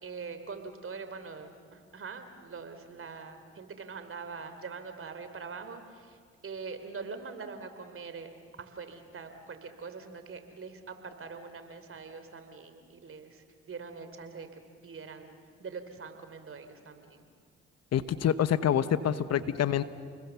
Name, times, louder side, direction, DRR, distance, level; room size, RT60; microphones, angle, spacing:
voice 1, 0.0-8.3 8.6-17.3, right 5 dB, 45° right, 8 dB, 3.3 m, -43 dB
voice 2, 17.9-19.8, left 9 dB, 60° left, 14 dB, 1.0 m, -26 dB
29.5 x 21.0 x 7.1 m, 2.1 s
supercardioid pair, 55°, 29 cm